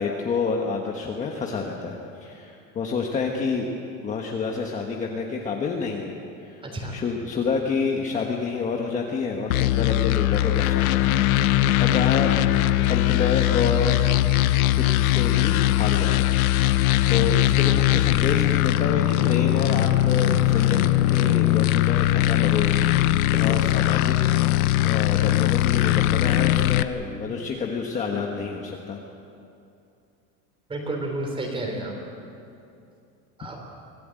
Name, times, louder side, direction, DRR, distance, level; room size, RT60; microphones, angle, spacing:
voice 1, 0.0-3.7 4.0-6.2 6.4-6.6 6.9-11.1 11.8-12.3 12.9-14.0 14.8-16.4 17.1-24.2 24.5-29.0, left 5 dB, 15° left, 0 dB, 1.3 m, -29 dB
voice 2, 6.6-7.0 23.3-23.6 30.7-32.0 33.4-33.6, right 2 dB, 10° right, 2 dB, 3.6 m, -31 dB
sound 1, 9.5-26.8, left 14 dB, 90° left, 1.0 m, -20 dB
25.0 x 17.0 x 9.0 m, 2.6 s
supercardioid pair, 170°, 42 cm